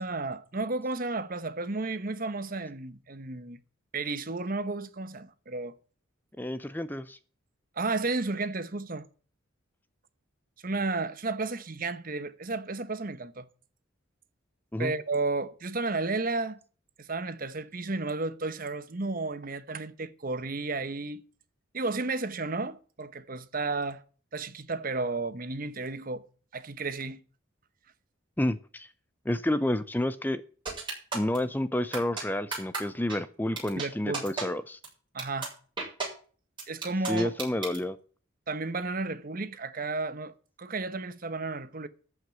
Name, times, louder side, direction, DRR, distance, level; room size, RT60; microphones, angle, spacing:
voice 1, 0.0-3.6 3.9-5.8 7.8-9.1 10.6-13.5 14.8-16.6 17.0-21.2 21.7-24.0 24.3-26.2 26.5-27.2 33.8-34.2 35.1-35.5 36.7-37.3 38.5-40.3 40.6-41.9, right 3 dB, 45° right, 1.0 m, -32 dB
voice 2, 6.4-7.2 14.7-14.9 28.4-28.9 29.3-30.4 31.1-34.8 37.1-38.0, left 1 dB, 10° left, 0.5 m, -30 dB
sound 1, 30.7-31.4 31.9-32.2 32.5-32.8 33.1-33.2 33.6-33.9 34.1-34.4 34.8-34.9 35.2-35.5 35.8-36.1 36.6-37.8, right 4 dB, 25° right, 6.9 m, -32 dB
13.5 x 5.9 x 9.1 m
head